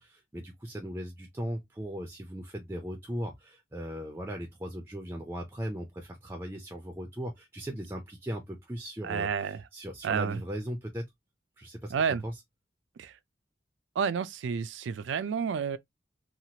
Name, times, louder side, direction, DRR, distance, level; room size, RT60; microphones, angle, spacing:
voice 1, 0.0-11.0 11.6-11.9 12.2-12.3, equal, 10° right, 0.4 m, -38 dB
voice 2, 9.0-9.6 10.0-10.4 11.9-12.2 13.0-13.1 14.0-15.8, right 6 dB, 85° right, 0.3 m, -30 dB
2.9 x 2.4 x 2.7 m
head